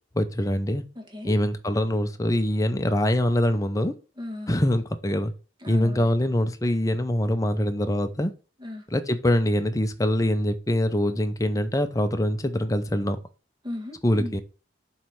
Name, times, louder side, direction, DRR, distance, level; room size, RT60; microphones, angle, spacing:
voice 1, 0.1-0.8 1.2-3.9 4.5-5.3 5.7-8.3 8.9-13.2 14.0-14.4, left 1 dB, 15° left, 0.6 m, -24 dB
voice 2, 0.9-1.4 4.2-4.5 5.6-6.1 8.6-8.8 13.6-14.3, left 1 dB, 20° right, 1.7 m, -36 dB
7.3 x 3.3 x 6.1 m
head